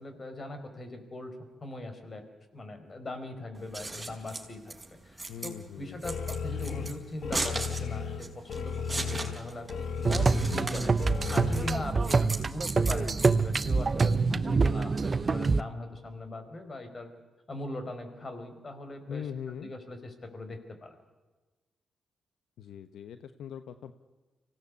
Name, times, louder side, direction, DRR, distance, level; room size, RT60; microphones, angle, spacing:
voice 1, 0.0-1.3 1.6-2.2 2.5-4.7 5.0-11.0 11.3-17.1 17.5-20.9, left 1 dB, 40° left, 8 dB, 4.8 m, -40 dB
Scissors, 3.5-14.1, right 2 dB, 15° right, 4.9 m, -38 dB
voice 2, 5.3-6.0 19.1-19.7 22.6-23.9, left 8 dB, 80° left, 11 dB, 0.9 m, -41 dB
sound 1, 6.0-11.8, left 6 dB, 65° left, 1.4 m, -35 dB
sound 2, 10.1-15.6, right 4 dB, 40° right, 0.8 m, -26 dB
24.5 x 17.5 x 8.4 m, 1.2 s
cardioid pair, 65°, 0 cm